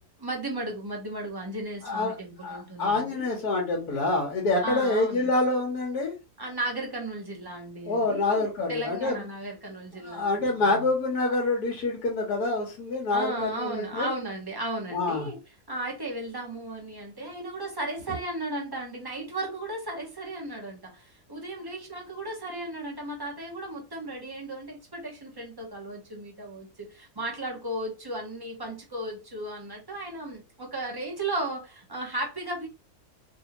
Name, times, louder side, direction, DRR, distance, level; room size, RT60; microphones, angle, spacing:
voice 1, 0.2-3.3 4.6-5.3 6.4-10.9 13.1-15.4 15.7-32.7, right 1 dB, 20° right, 0.8 m, -35 dB
voice 2, 1.8-2.2 2.4-6.1 7.8-9.2 10.0-14.1 14.9-15.3, left 2 dB, 70° left, 1.4 m, -26 dB
3.3 x 2.7 x 2.8 m
omnidirectional pair, 1.7 m